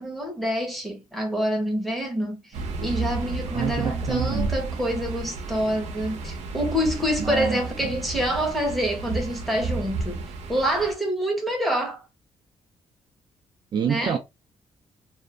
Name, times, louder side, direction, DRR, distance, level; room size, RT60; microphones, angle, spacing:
voice 1, 0.0-12.0 13.8-14.2, equal, ahead, 0.7 m, -27 dB
sound 1, 2.5-10.9, right 3 dB, 80° right, 0.6 m, -32 dB
voice 2, 3.5-4.5 7.2-7.9 13.7-14.2, right 8 dB, 40° right, 0.4 m, -27 dB
2.4 x 2.0 x 3.0 m
cardioid pair, 160°, 11 cm